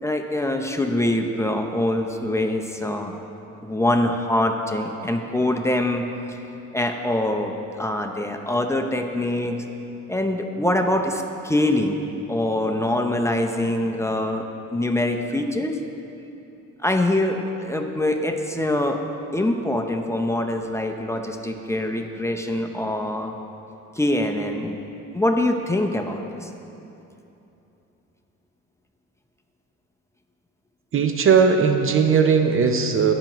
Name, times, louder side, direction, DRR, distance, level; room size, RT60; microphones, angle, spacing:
voice 1, 0.0-3.2 3.6-6.0 6.7-9.6 10.1-14.4 14.7-15.8 16.8-19.0 19.3-23.3 24.0-24.8 25.1-26.5, left 1 dB, 10° left, 3 dB, 0.6 m, -24 dB
voice 2, 30.9-33.1, right 6 dB, 45° right, 6 dB, 0.6 m, -18 dB
16.5 x 6.1 x 3.0 m, 2.9 s
cardioid pair, 90°, 30 cm